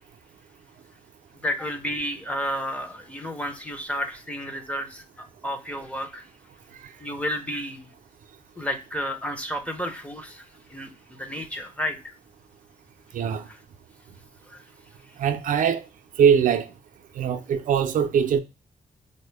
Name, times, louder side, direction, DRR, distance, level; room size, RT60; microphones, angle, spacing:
voice 1, 1.3-6.2 7.0-7.9 8.6-12.1 13.5-13.6 14.5-14.6, equal, 10° left, 0.6 m, -32 dB
voice 2, 13.1-13.5 15.2-15.8 16.2-16.7 17.2-18.4, right 7 dB, 70° right, 0.4 m, -22 dB
4.1 x 2.0 x 3.2 m
wide cardioid pair, 130°, 15 cm